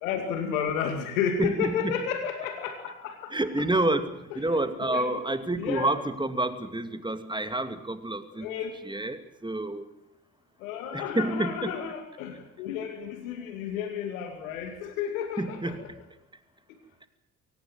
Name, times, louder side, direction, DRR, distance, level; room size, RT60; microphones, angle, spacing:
voice 1, 0.0-3.2 4.9-5.2 5.6-5.9 8.4-8.7 10.6-15.9, left 7 dB, 75° left, 6 dB, 2.4 m, -32 dB
voice 2, 1.4-2.0 3.3-8.5 8.8-9.9 10.9-11.7 15.4-15.9, right 2 dB, 10° right, 9 dB, 2.6 m, -29 dB
23.0 x 18.5 x 9.1 m, 0.81 s
figure-of-eight pair, 45°, 42 cm